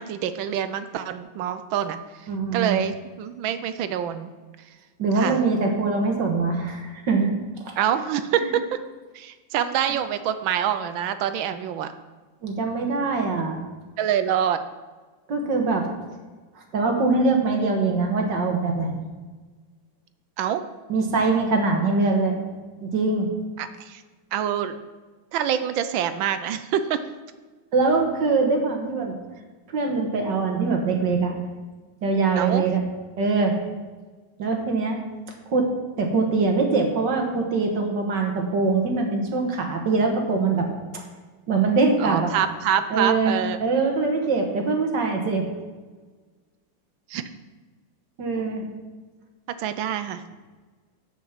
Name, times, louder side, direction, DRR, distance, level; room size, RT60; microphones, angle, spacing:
voice 1, 0.0-2.0 2.5-4.3 5.2-5.4 7.8-8.8 9.1-11.9 14.0-14.6 20.4-20.6 23.6-24.0 24.3-24.8 25.3-27.0 32.4-32.6 42.0-43.6 47.1-47.2 49.6-50.2, right 9 dB, 80° right, 11 dB, 1.4 m, -26 dB
voice 2, 2.3-2.8 5.0-7.3 8.4-8.5 12.4-13.6 15.3-15.9 16.7-19.0 20.9-22.4 22.8-23.3 27.7-29.1 29.7-31.4 32.0-32.8 33.2-33.5 34.4-35.0 35.5-35.7 36.0-40.7 41.5-42.3 42.9-45.5 48.2-48.6, right 3 dB, 65° right, 2 dB, 2.0 m, -23 dB
8.6 x 8.3 x 5.9 m, 1.3 s
omnidirectional pair, 2.1 m